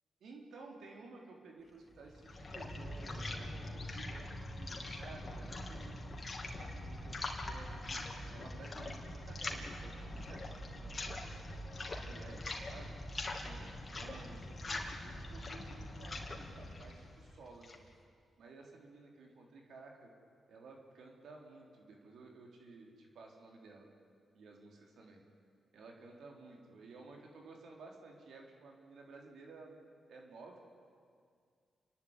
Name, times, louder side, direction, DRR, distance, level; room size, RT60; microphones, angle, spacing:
voice 1, 0.2-6.0 6.4-7.2 7.5-12.9 13.4-17.9 18.4-20.1 20.5-23.9 24.3-25.2 25.7-30.6, right 3 dB, 75° right, 0 dB, 3.8 m, -55 dB
sound 1, 1.9-17.9, left 1 dB, 45° left, 3.0 m, -43 dB
28.5 x 11.5 x 9.8 m, 2.1 s
supercardioid pair, 55°, 0 cm